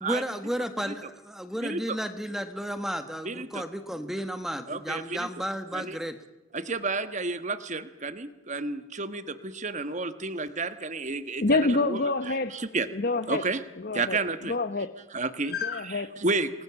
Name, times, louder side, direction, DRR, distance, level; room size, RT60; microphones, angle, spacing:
voice 1, 0.0-6.2, equal, ahead, 8 dB, 1.4 m, -33 dB
voice 2, 1.6-2.0 3.2-3.6 4.7-5.3 5.7-6.0 6.5-12.0 12.3-12.9 13.3-13.6 13.9-14.5 15.1-15.5 15.8-16.5, right 3 dB, 35° right, 11 dB, 1.4 m, -31 dB
voice 3, 11.4-12.5 12.9-13.4 13.8-14.2 14.4-14.9 15.5-16.1, left 3 dB, 45° left, 11 dB, 0.9 m, -27 dB
28.5 x 20.5 x 7.1 m, 1.0 s
head